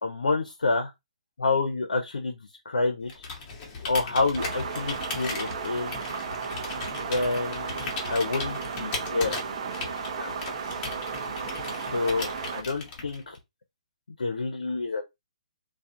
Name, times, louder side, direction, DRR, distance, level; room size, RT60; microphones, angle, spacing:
voice 1, 0.0-0.9 1.4-3.2 3.9-5.9 7.0-7.8 8.1-9.4 10.2-10.3 11.8-13.4 14.2-15.0, left 3 dB, 85° left, 0.5 m, -28 dB
Computer keyboard, 3.1-13.4, left 4 dB, 30° left, 0.8 m, -37 dB
sound 1, 4.3-12.6, right 6 dB, 50° right, 0.5 m, -34 dB
2.3 x 2.1 x 2.7 m
hypercardioid pair, 140°, 4 cm